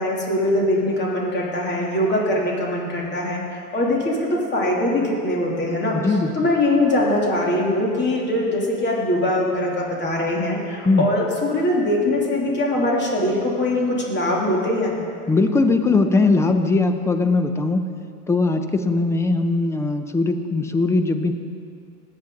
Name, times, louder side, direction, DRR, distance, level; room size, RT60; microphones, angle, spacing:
voice 1, 0.0-6.0 6.3-15.0, left 1 dB, 25° left, -3 dB, 2.9 m, -22 dB
voice 2, 5.9-6.3 10.8-11.1 15.3-17.9 18.3-21.3, left 3 dB, 5° left, 8 dB, 0.4 m, -20 dB
20.5 x 9.0 x 3.8 m, 2.3 s
supercardioid pair, 120°, 47 cm